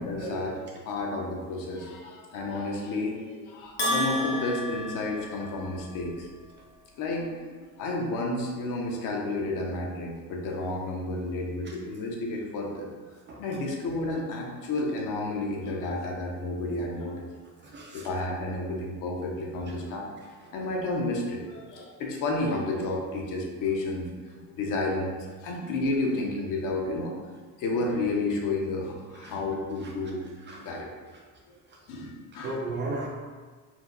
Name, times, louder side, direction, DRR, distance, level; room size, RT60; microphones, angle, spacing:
voice 1, 0.1-0.5 0.9-6.3 7.0-7.3 7.8-12.9 13.4-17.3 17.9-20.1 20.5-24.1 24.3-25.1 25.4-27.1 27.6-30.2 30.6-30.9 31.9-32.6, left 2 dB, 60° left, -1 dB, 0.8 m, -31 dB
Bell, 3.8-5.9, left 1 dB, 30° left, 0.7 m, -31 dB
voice 2, 17.7-18.1 29.2-29.3 30.5-30.7 32.4-33.1, right 2 dB, 30° right, -1 dB, 0.4 m, -34 dB
4.4 x 2.2 x 3.9 m, 1.5 s
cardioid pair, 160°, 37 cm